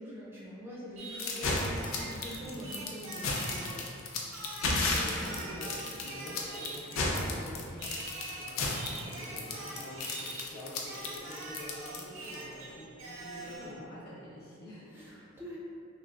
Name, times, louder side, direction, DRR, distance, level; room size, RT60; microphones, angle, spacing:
voice 1, 0.0-3.9 14.9-15.6, equal, 10° right, -6 dB, 0.3 m, -44 dB
Singing, 1.0-3.8 4.3-7.3 7.8-10.5 10.8-13.7, right 2 dB, 70° right, 0.5 m, -44 dB
sound 1, 1.2-12.4, left 3 dB, 75° left, 0.4 m, -33 dB
voice 2, 4.6-15.3, equal, 50° left, -6 dB, 0.7 m, -46 dB
3.1 x 2.7 x 2.4 m, 2.5 s
head